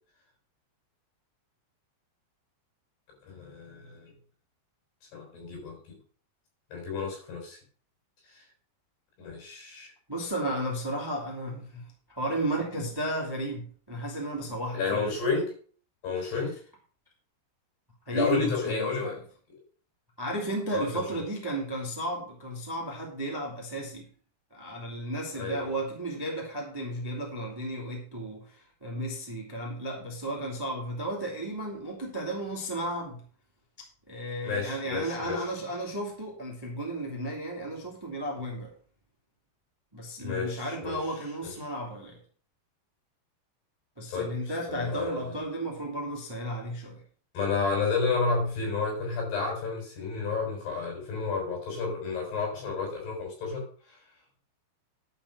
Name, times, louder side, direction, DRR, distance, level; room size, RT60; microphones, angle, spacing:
voice 1, 3.2-4.1 5.1-6.0 6.7-7.6 8.2-8.4 9.2-9.9 14.7-15.5 16.0-16.5 18.1-19.2 20.7-21.0 25.3-25.7 34.4-35.4 40.2-41.0 41.4-41.5 44.1-44.3 44.7-45.4 47.3-54.0, left 4 dB, 65° left, 0 dB, 8.3 m, -31 dB
voice 2, 10.1-11.8 12.1-15.0 18.1-19.2 20.2-24.0 24.5-33.2 34.1-38.7 39.9-42.2 44.0-47.0, right 1 dB, 5° right, -1 dB, 2.0 m, -33 dB
11.5 x 5.8 x 6.4 m, 0.44 s
omnidirectional pair, 5.0 m